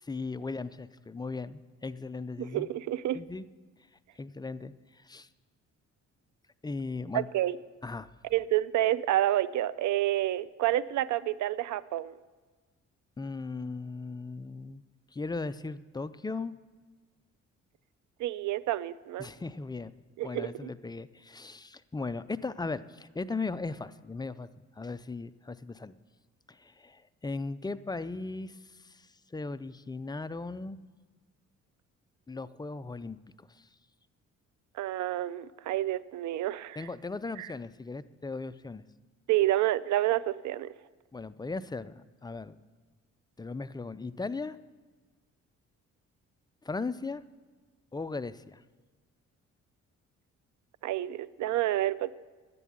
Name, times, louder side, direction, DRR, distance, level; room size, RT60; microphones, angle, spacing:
voice 1, 0.0-2.7 3.1-3.4 4.2-5.3 6.6-7.3 7.8-8.1 13.2-14.8 15.1-16.5 19.2-19.9 20.2-24.5 24.8-25.9 26.5-30.8 32.3-33.7 36.8-38.8 41.1-42.6 43.4-44.6 46.6-47.2 47.9-48.6, left 3 dB, 15° left, 14 dB, 0.4 m, -37 dB
voice 2, 2.4-3.2 7.1-7.6 8.3-12.1 18.2-19.3 20.2-20.7 34.7-36.9 37.4-37.5 39.3-40.7 50.8-52.1, right 14 dB, 75° right, 19 dB, 0.5 m, -29 dB
11.0 x 8.4 x 8.6 m, 1.4 s
cardioid pair, 90°, 30 cm